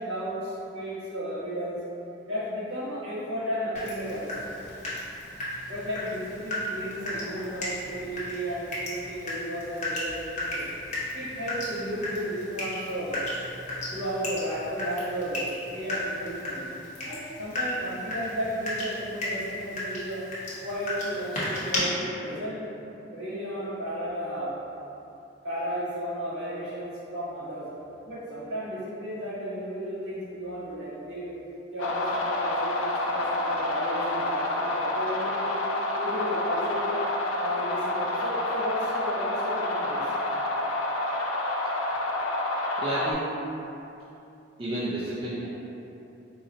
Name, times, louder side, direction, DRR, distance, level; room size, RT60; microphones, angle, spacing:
voice 1, 0.0-1.8 2.2-4.7 5.7-10.6 11.1-13.2 13.9-16.7 17.0-20.2 20.6-22.6 23.1-24.5 25.4-27.6 28.0-31.3 31.7-35.5 35.9-36.9 37.3-40.1, equal, 60° right, -11 dB, 1.3 m, -34 dB
Water tap faucet / Drip, 3.8-21.8, left 1 dB, 35° left, 0.8 m, -35 dB
sound 1, 31.8-43.1, left 2 dB, 80° left, 0.4 m, -28 dB
voice 2, 42.8-43.3 44.6-45.5, right 1 dB, 25° right, -9 dB, 0.3 m, -31 dB
3.9 x 2.1 x 3.8 m, 2.8 s
head